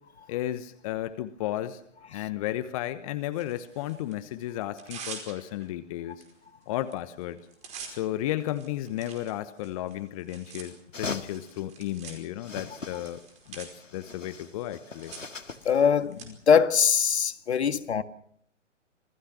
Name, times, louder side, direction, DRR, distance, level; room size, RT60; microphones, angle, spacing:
voice 1, 0.3-1.8 2.1-6.2 6.7-7.4 7.9-13.2 13.5-15.1, left 13 dB, 30° left, 1.1 m, -33 dB
Tearing, 3.3-4.2 4.6-5.7 6.2-6.3 6.6-6.9 7.2-16.3, right 6 dB, 20° right, 5.0 m, -46 dB
sound 1, 10.9-11.6 12.4-13.3 13.6-15.8, left 3 dB, 85° left, 2.0 m, -40 dB
voice 2, 15.7-18.0, left 7 dB, 60° left, 1.8 m, -22 dB
27.5 x 20.0 x 6.1 m
figure-of-eight pair, 130°, 37 cm